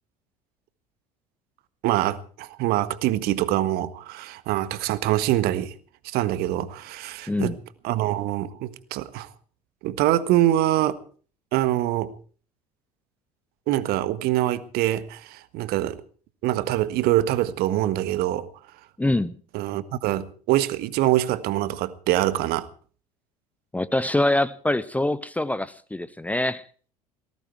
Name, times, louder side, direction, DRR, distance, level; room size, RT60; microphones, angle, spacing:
voice 1, 1.8-5.7 6.0-7.5 7.8-9.3 9.8-11.0 11.5-12.1 13.7-16.0 16.4-18.5 19.5-22.7, right 14 dB, 50° right, 1.5 m, -24 dB
voice 2, 19.0-19.3 23.7-26.6, left 1 dB, 5° left, 0.8 m, -24 dB
19.0 x 16.5 x 4.6 m
figure-of-eight pair, 65°, 20 cm